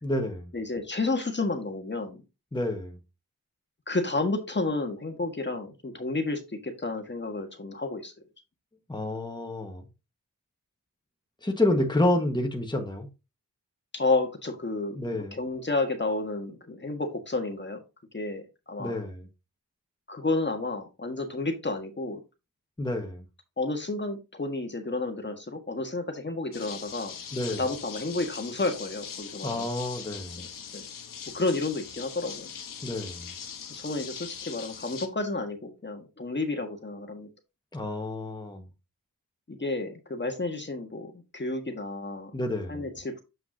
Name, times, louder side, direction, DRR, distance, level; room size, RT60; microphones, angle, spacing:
voice 1, 0.0-0.5 2.5-3.0 8.9-9.9 11.4-13.1 14.9-15.4 18.8-19.3 22.8-23.3 27.3-27.6 29.4-30.4 32.8-33.3 37.7-38.7 42.3-42.8, left 1 dB, 15° left, 1.5 m, -29 dB
voice 2, 0.5-2.2 3.9-8.1 13.9-17.8 18.1-19.0 20.1-22.2 23.6-27.1 27.6-29.7 30.4-30.8 31.3-32.5 33.7-37.3 39.5-42.3 42.7-43.2, left 2 dB, 35° left, 1.6 m, -31 dB
sound 1, 26.5-35.1, left 7 dB, 85° left, 1.0 m, -41 dB
7.6 x 5.8 x 2.8 m
cardioid pair, 60°, 32 cm